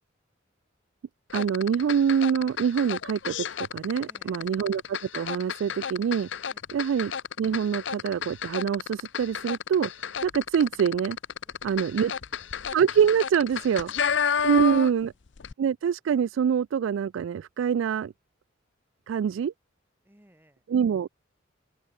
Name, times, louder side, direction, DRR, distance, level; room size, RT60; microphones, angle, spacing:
sound 1, 1.3-15.1 15.4-15.5, left 7 dB, 65° left, 0.7 m, -32 dB
voice 1, 1.3-6.3 6.7-7.1 7.4-9.9 10.2-11.2 11.6-12.1 12.7-13.9 14.4-15.1 15.6-18.1 19.1-19.5 20.7-21.1, right 7 dB, 75° right, 0.3 m, -25 dB
voice 2, 4.0-4.5 6.5-6.9 10.7-10.9 11.4-12.5 13.5-15.3 20.0-20.6, equal, 10° right, 3.3 m, -60 dB
open air
head